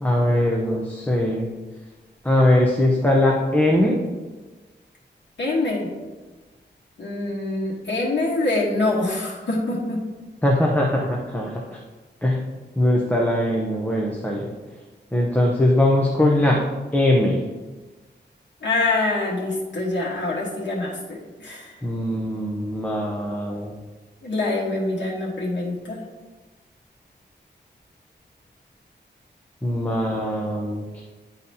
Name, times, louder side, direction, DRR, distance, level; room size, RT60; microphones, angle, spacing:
voice 1, 0.0-1.5 2.2-4.0 10.4-11.5 12.2-12.4 12.8-14.5 15.1-16.6 16.9-17.4 21.8-23.8 29.6-31.0, left 1 dB, 10° left, -2 dB, 0.7 m, -21 dB
voice 2, 5.4-5.9 7.0-10.0 18.6-21.7 24.2-26.0, left 2 dB, 80° left, -5 dB, 1.4 m, -25 dB
10.5 x 4.0 x 2.8 m, 1.3 s
wide cardioid pair, 130°, 19 cm